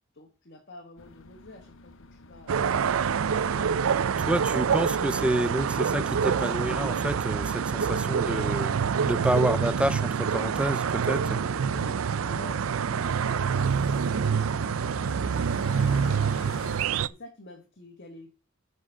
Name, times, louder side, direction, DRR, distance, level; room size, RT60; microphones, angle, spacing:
voice 1, 0.1-3.0 11.3-15.3 15.6-16.1 16.4-18.3, left 2 dB, 50° left, 1.9 m, -49 dB
sound 1, 1.0-16.9, left 3 dB, 65° left, 0.8 m, -48 dB
sound 2, 2.5-17.1, right 6 dB, 80° right, 0.5 m, -26 dB
voice 2, 4.2-8.8 9.0-11.4, right 1 dB, 5° right, 0.4 m, -29 dB
7.2 x 6.4 x 6.8 m
head